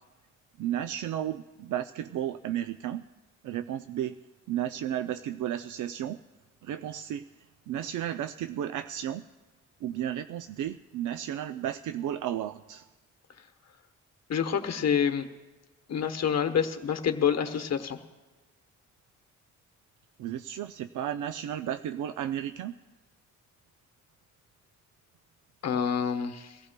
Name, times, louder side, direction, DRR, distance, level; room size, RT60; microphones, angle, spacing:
voice 1, 0.6-3.0 3.4-4.2 4.5-6.2 6.6-7.3 7.7-9.3 9.8-12.9 20.2-22.7, right 11 dB, 80° right, 10 dB, 0.5 m, -33 dB
voice 2, 14.3-15.2 15.9-18.0 25.6-26.6, left 7 dB, 60° left, 7 dB, 1.1 m, -27 dB
23.0 x 15.0 x 2.2 m, 1.2 s
cardioid pair, 80°, 30 cm